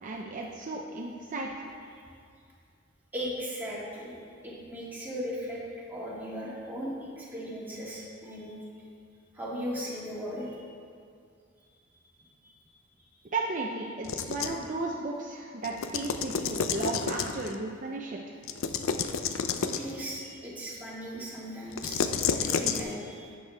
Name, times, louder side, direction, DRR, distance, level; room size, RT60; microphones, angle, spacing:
voice 1, 0.0-1.5 13.3-18.4, right 3 dB, 40° right, -1 dB, 0.6 m, -34 dB
voice 2, 3.1-4.2 4.4-5.6 5.9-8.5 9.3-10.6 11.9-12.5 16.6-16.8 19.6-23.4, equal, 10° right, -7 dB, 1.9 m, -38 dB
sound 1, 14.0-14.7 15.6-17.6 18.4-19.9 21.7-22.8, left 6 dB, 85° left, 0.5 m, -30 dB
10.5 x 7.5 x 3.4 m, 2.3 s
head